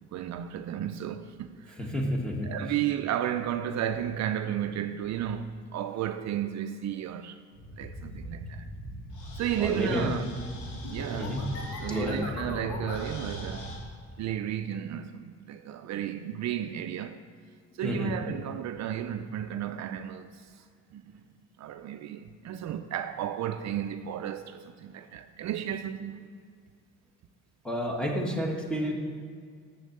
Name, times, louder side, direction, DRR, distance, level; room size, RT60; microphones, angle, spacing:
voice 1, 0.0-1.8 2.4-7.4 7.8-8.7 9.4-10.2 10.9-11.4 11.8-13.8 14.2-17.2 17.7-20.6 20.9-21.2 21.6-26.3, right 10 dB, 65° right, 0.5 m, -33 dB
voice 2, 1.8-2.5 9.6-10.1 11.1-11.5 11.9-12.3 17.8-18.1 27.6-28.9, equal, 5° left, 1.5 m, -30 dB
sound 1, 7.5-13.8, equal, 80° left, 1.6 m, -39 dB
7.0 x 6.4 x 6.5 m
cardioid pair, 90°, 30 cm